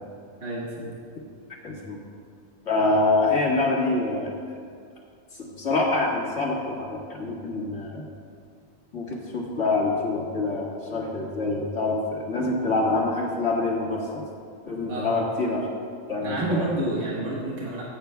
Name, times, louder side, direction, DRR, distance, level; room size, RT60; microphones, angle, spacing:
voice 1, 0.4-0.9 14.9-15.2 16.2-17.8, right 2 dB, 55° right, -6 dB, 1.8 m, -29 dB
voice 2, 1.6-2.0 2.7-4.3 5.6-8.0 8.9-14.2 14.7-15.7 16.1-16.7, left 2 dB, 65° left, -3 dB, 2.2 m, -25 dB
24.0 x 8.7 x 2.3 m, 2.3 s
omnidirectional pair, 1.4 m